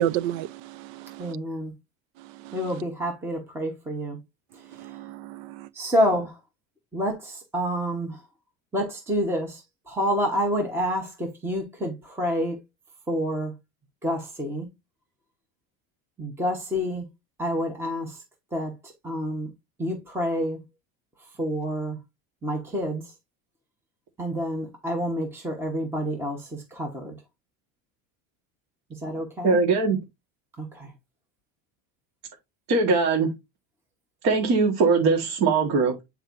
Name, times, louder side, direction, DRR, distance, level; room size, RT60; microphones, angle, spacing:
voice 1, 0.0-1.4 2.4-2.8 4.8-5.7, right 12 dB, 75° right, 0.6 m, -31 dB
voice 2, 1.2-1.7 2.5-4.2 5.8-6.3 6.9-8.2 8.7-9.6 9.9-12.6 13.1-13.5 14.0-14.7 16.2-17.0 17.4-18.1 18.5-18.7 19.0-19.5 19.8-20.6 21.4-22.0 22.4-23.0 24.2-26.4 26.8-27.1 29.0-29.6 30.6-30.9, equal, 5° right, 1.0 m, -28 dB
voice 3, 29.4-30.0 32.7-33.3 34.2-36.0, right 4 dB, 45° right, 1.5 m, -21 dB
8.8 x 4.5 x 2.6 m
cardioid pair, 180°, 40 cm